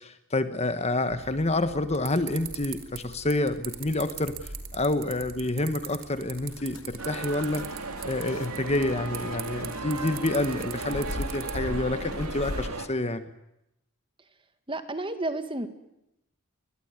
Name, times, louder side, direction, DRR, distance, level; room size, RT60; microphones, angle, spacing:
voice 1, 0.0-4.4 4.7-7.6 8.0-13.3, left 2 dB, 30° left, 11 dB, 1.4 m, -28 dB
sound 1, 1.1-12.7, right 6 dB, 60° right, 3.3 m, -43 dB
sound 2, 6.5-12.7, left 2 dB, 60° left, 0.9 m, -39 dB
sound 3, 7.0-12.9, right 3 dB, 80° right, 2.7 m, -36 dB
voice 2, 14.7-15.7, right 2 dB, 25° right, 9 dB, 1.9 m, -31 dB
24.0 x 20.5 x 9.6 m, 0.86 s
head